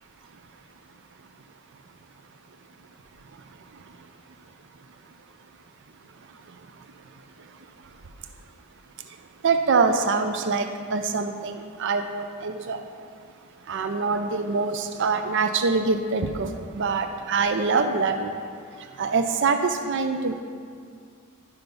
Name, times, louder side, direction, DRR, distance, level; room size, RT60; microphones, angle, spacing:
voice 1, 9.4-12.8 13.7-18.3 19.0-20.4, right 4 dB, 60° right, 7 dB, 0.5 m, -24 dB
11.5 x 5.7 x 5.3 m, 2.2 s
head